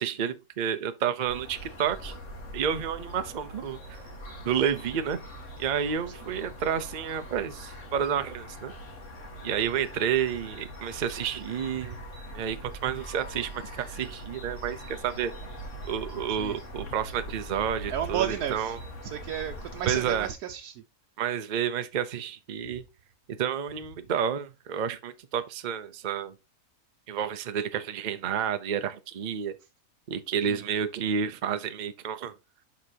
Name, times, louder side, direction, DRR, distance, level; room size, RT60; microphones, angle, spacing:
voice 1, 0.0-2.2 2.5-4.0 4.4-5.2 5.6-8.7 9.4-12.0 12.3-15.3 15.8-18.8 19.9-20.3 21.2-22.8 23.4-26.3 27.1-29.5 30.1-32.3, right 8 dB, 50° right, 0.6 m, -30 dB
sound 1, 1.2-20.3, equal, 50° left, 1.7 m, -42 dB
voice 2, 17.9-18.8 19.0-20.7 30.4-30.6, right 10 dB, 85° right, 1.2 m, -32 dB
11.5 x 4.0 x 2.8 m
omnidirectional pair, 1.6 m